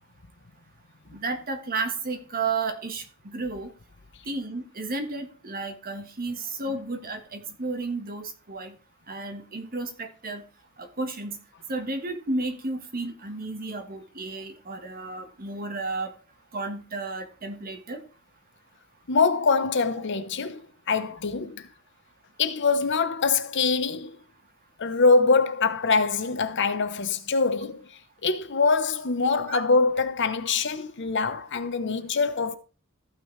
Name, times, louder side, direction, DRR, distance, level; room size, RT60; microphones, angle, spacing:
voice 1, 1.1-3.7 4.3-8.7 9.1-10.4 10.8-11.4 11.7-16.1 16.5-18.0 29.5-29.6, right 3 dB, 45° right, 1.5 m, -32 dB
voice 2, 19.1-21.7 22.4-24.2 24.8-32.6, left 4 dB, 60° left, 0.9 m, -24 dB
14.5 x 6.0 x 3.2 m
head